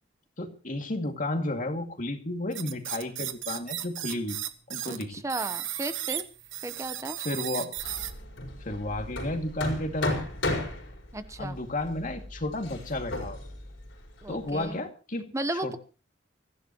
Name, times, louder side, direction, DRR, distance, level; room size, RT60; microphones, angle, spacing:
voice 1, 0.4-4.4 4.7-5.1 7.2-7.7 8.6-10.2 11.4-13.4 14.3-15.3 15.6-15.8, left 1 dB, 45° left, 5 dB, 2.3 m, -32 dB
sound 1, 2.5-5.0 5.3-8.1, right 12 dB, 80° right, 1.4 m, -35 dB
voice 2, 4.8-6.2 6.6-7.2 11.1-11.6 14.2-14.8 15.3-15.8, right 2 dB, 15° right, 11 dB, 1.0 m, -34 dB
Hammer, 7.8-14.7, left 1 dB, 75° left, 5.0 m, -35 dB
24.0 x 15.0 x 3.0 m, 0.35 s
head